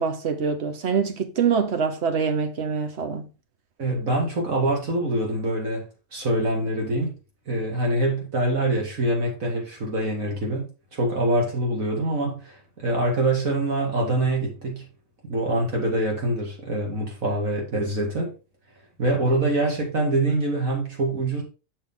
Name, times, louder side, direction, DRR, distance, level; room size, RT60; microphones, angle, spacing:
voice 1, 0.0-3.3, right 6 dB, 55° right, 1.2 m, -25 dB
voice 2, 3.8-5.8 6.1-7.1 7.5-14.9 15.2-18.3 19.0-21.4, right 1 dB, 80° right, 2.6 m, -25 dB
6.7 x 5.7 x 3.8 m
omnidirectional pair, 1.4 m